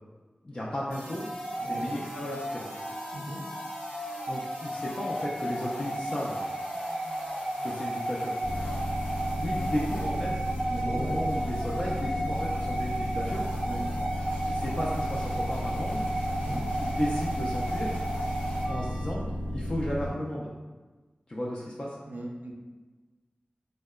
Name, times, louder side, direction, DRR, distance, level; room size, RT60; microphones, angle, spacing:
voice 1, 0.4-1.2 1.6-2.7 4.3-6.4 7.6-8.4 9.4-10.3 10.8-13.5 14.5-16.0 16.8-17.9 18.7-19.2 19.5-20.5 21.3-22.0, equal, 35° left, -6 dB, 0.3 m, -34 dB
sound 1, 0.9-19.1, right 1 dB, 90° left, 0.9 m, -34 dB
voice 2, 1.6-2.0 3.1-3.5 10.1-10.2 10.7-11.2 13.6-13.9 16.3-16.6 22.1-22.5, right 1 dB, 75° right, 0 dB, 0.4 m, -38 dB
sound 2, 8.4-20.1, equal, 60° left, 0.9 m, -33 dB
2.7 x 2.1 x 2.2 m, 1.3 s
wide cardioid pair, 50°, 3 cm